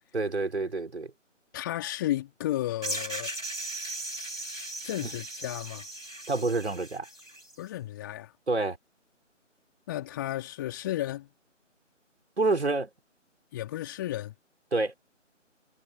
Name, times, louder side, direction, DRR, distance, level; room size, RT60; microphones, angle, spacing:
voice 1, 0.1-1.1 5.0-5.1 6.3-7.0 8.5-8.8 12.4-12.9 14.7-14.9, right 3 dB, 60° right, 5.5 m, -27 dB
voice 2, 1.5-3.3 4.8-5.8 7.6-8.3 9.9-11.3 13.5-14.3, left 14 dB, 15° left, 3.5 m, -33 dB
sound 1, 2.8-7.5, right 1 dB, 85° right, 6.8 m, -38 dB
figure-of-eight pair, 155°, 38 cm